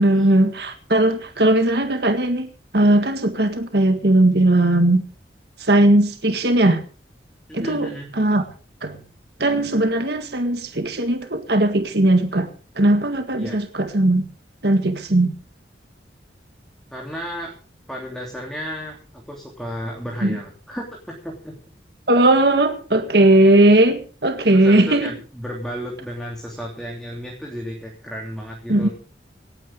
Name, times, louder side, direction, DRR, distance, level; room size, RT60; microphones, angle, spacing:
voice 1, 0.0-5.0 5.6-6.8 7.5-8.4 8.8-9.0 9.4-12.5 12.8-14.3 14.6-15.3 20.2-20.4 22.1-25.1 28.7-28.9, right 1 dB, 60° right, 1.8 m, -18 dB
voice 2, 7.5-8.1 13.4-13.6 16.9-17.5 17.9-21.5 24.5-28.9, equal, 5° left, 3.2 m, -33 dB
26.5 x 9.2 x 3.7 m
head